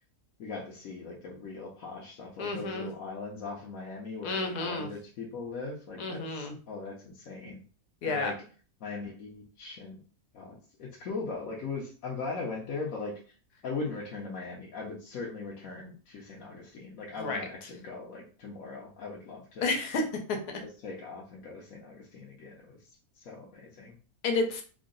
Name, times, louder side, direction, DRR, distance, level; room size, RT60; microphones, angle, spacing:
voice 1, 0.4-7.6 8.0-8.3 8.8-10.0 10.3-13.1 13.6-19.7 20.8-22.7 23.2-24.0, left 4 dB, 65° left, -3 dB, 1.1 m, -39 dB
voice 2, 2.4-2.9 4.2-4.9 6.0-6.6 8.0-8.3 17.2-17.4 19.6-20.6 24.2-24.6, left 3 dB, 80° left, 3 dB, 1.3 m, -31 dB
3.7 x 2.1 x 3.8 m, 0.38 s
omnidirectional pair, 1.6 m